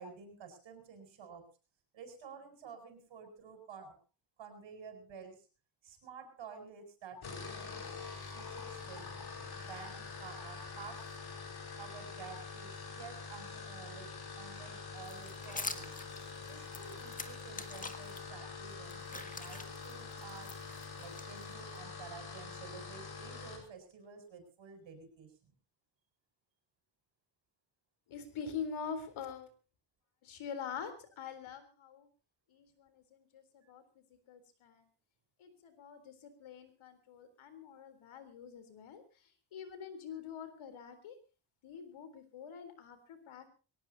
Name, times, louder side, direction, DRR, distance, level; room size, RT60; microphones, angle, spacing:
voice 1, 0.0-1.5 1.9-4.0 4.4-5.4 5.8-7.9 8.3-9.1 9.5-11.1 11.8-14.1 14.4-16.0 16.4-20.6 21.0-25.5 33.6-33.7 40.1-40.2, right 5 dB, 70° right, 6 dB, 7.5 m, -51 dB
sound 1, 7.1-23.7, left 5 dB, 50° left, 5.4 m, -45 dB
sound 2, 15.0-18.2 18.7-21.8, left 3 dB, 15° left, 1.7 m, -45 dB
voice 2, 28.1-29.5 30.2-32.0 32.5-32.7 33.3-33.4 33.7-33.8 34.3-34.7 35.4-39.0 39.5-41.1 41.6-43.5, left 6 dB, 85° left, 10 dB, 3.9 m, -44 dB
22.5 x 19.0 x 2.9 m, 0.33 s
cardioid pair, 135°, 47 cm